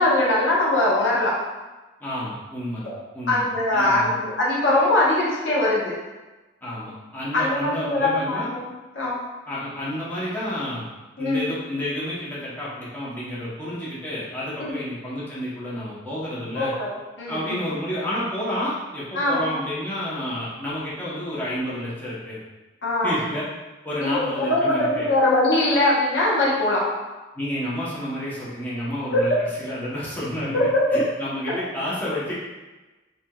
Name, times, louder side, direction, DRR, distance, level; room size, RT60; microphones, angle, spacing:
voice 1, 0.0-1.4 2.8-2.9 3.3-5.9 7.3-8.7 9.0-9.2 11.2-11.4 14.6-14.8 16.5-17.7 19.1-19.5 22.8-23.2 24.0-26.9 29.1-29.2 30.5-31.0 31.5-31.6, left 1 dB, 85° left, -5 dB, 0.9 m, -22 dB
voice 2, 2.0-3.4 3.7-4.1 6.6-8.5 9.5-10.9 11.2-16.7 17.3-22.4 23.0-23.4 23.8-25.1 27.3-29.3 29.6-30.6 30.9-32.3, left 1 dB, 10° left, -9 dB, 0.8 m, -30 dB
3.4 x 2.7 x 2.2 m, 1.1 s
head